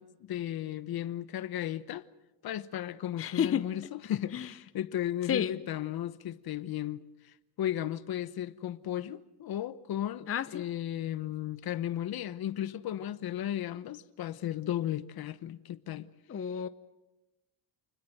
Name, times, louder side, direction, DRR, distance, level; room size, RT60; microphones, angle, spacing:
voice 1, 0.0-2.0 2.4-7.0 7.6-16.1, left 11 dB, 55° left, 1.1 m, -35 dB
voice 2, 3.2-3.6 4.3-4.5 5.3-5.5 10.3-10.6 16.3-16.7, left 8 dB, 30° left, 0.8 m, -30 dB
28.5 x 21.0 x 7.9 m
cardioid pair, 110°, 43 cm